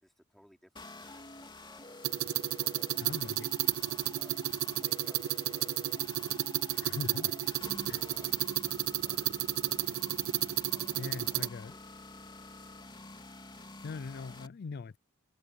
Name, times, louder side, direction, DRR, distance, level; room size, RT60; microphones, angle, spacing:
voice 1, 0.0-2.0 2.5-9.9 10.7-11.8 12.1-12.5, equal, ahead, 3.1 m, -63 dB
sound 1, 0.8-14.5, left 2 dB, 25° left, 3.3 m, -49 dB
sound 2, 2.0-11.5, right 13 dB, 70° right, 0.4 m, -32 dB
voice 2, 3.0-3.5 6.8-7.3 7.8-8.1 11.0-11.7 13.8-15.0, left 4 dB, 50° left, 0.4 m, -41 dB
head